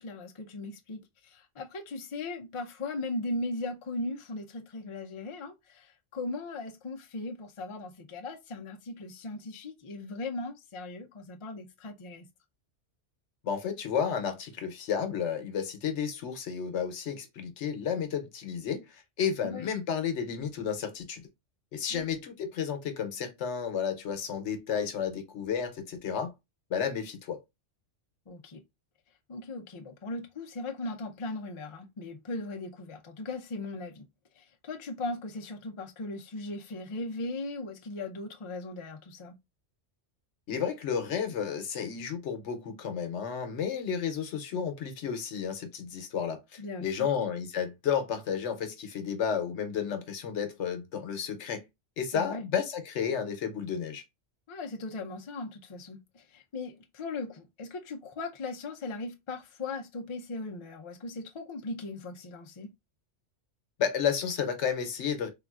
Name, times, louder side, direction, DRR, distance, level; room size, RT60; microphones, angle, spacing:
voice 1, 0.0-12.3 19.4-19.7 21.9-22.1 28.3-28.6 29.3-34.1 34.4-39.4 46.6-47.1 52.1-52.4 54.5-62.7, left 2 dB, 45° left, 0.4 m, -38 dB
voice 2, 13.4-21.2 21.7-26.3 26.7-27.4 40.5-51.6 52.0-54.0 63.8-65.3, left 7 dB, 75° left, 1.0 m, -32 dB
3.7 x 2.4 x 2.3 m
omnidirectional pair, 1.2 m